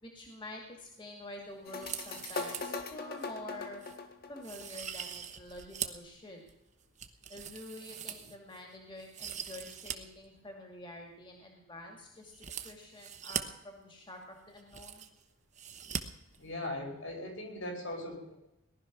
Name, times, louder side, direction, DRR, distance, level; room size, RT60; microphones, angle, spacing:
voice 1, 0.0-3.9 4.3-6.4 7.3-15.1, left 1 dB, 25° left, 2 dB, 2.1 m, -48 dB
sound 1, 1.7-5.1, left 3 dB, 45° left, 1.6 m, -40 dB
sound 2, 1.7-2.8 3.2-3.3 3.8-4.0 4.4-6.1 6.5-8.6 9.0-10.0 10.2-10.3 12.3-13.4 14.2-14.3 14.5-15.2 15.5-16.0 16.3-16.4, right 8 dB, 35° right, 1.0 m, -41 dB
voice 2, 16.4-18.3, left 1 dB, 65° left, 2 dB, 5.4 m, -39 dB
18.5 x 12.0 x 6.0 m, 0.87 s
head